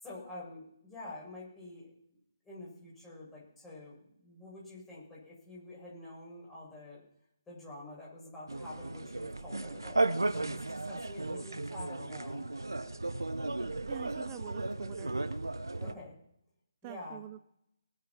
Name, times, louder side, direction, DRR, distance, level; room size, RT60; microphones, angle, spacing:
voice 1, 0.0-1.9 2.4-7.0 7.5-10.0 10.3-12.4 15.8-16.1 16.8-17.2, left 2 dB, 10° left, -6 dB, 7.3 m, -47 dB
sound 1, 8.5-15.9, right 2 dB, 75° right, 1.0 m, -35 dB
voice 2, 13.9-15.2 16.8-17.4, right 14 dB, 25° right, 13 dB, 0.5 m, -45 dB
20.0 x 8.1 x 6.1 m, 0.76 s
figure-of-eight pair, 145°, 2 cm